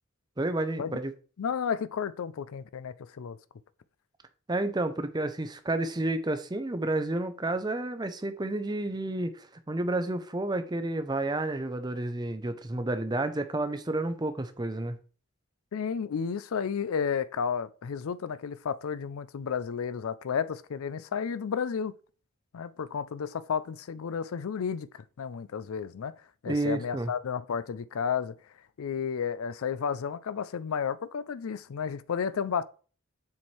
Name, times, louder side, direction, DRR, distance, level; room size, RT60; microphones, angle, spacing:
voice 1, 0.4-1.1 4.5-15.0 26.5-27.1, right 2 dB, 20° right, 0.5 m, -30 dB
voice 2, 1.4-3.4 15.7-21.9 22.5-26.1 26.4-28.3 28.8-32.6, left 6 dB, 75° left, 0.4 m, -32 dB
7.1 x 4.4 x 3.1 m
head